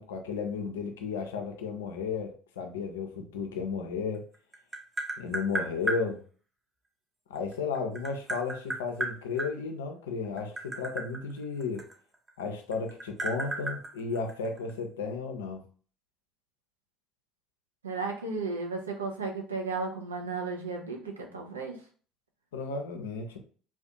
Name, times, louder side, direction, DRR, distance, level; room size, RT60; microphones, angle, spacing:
voice 1, 0.0-4.3 5.2-6.2 7.3-11.9 12.4-15.6 22.5-23.4, left 5 dB, 75° left, 0.4 m, -34 dB
Tap, 4.1-6.0 7.3-9.5 10.2-12.4 12.7-14.7, right 2 dB, 25° right, 0.7 m, -34 dB
voice 2, 17.8-21.8, right 4 dB, 85° right, 0.4 m, -34 dB
2.4 x 2.1 x 2.7 m
figure-of-eight pair, 60°, 0 cm